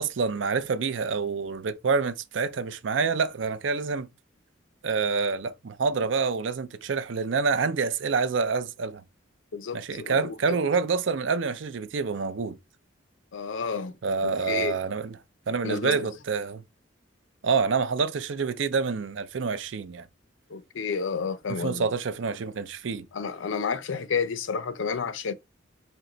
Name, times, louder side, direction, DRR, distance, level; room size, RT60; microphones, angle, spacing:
voice 1, 0.0-4.1 4.8-9.0 9.7-12.6 14.0-15.2 15.5-16.6 17.4-20.1 21.6-23.1, right 5 dB, 75° right, 0.5 m, -27 dB
voice 2, 9.5-10.6 13.3-13.9 14.2-14.8 15.6-16.1 20.5-21.9 23.1-25.3, left 5 dB, 85° left, 0.5 m, -31 dB
4.4 x 2.9 x 3.8 m
head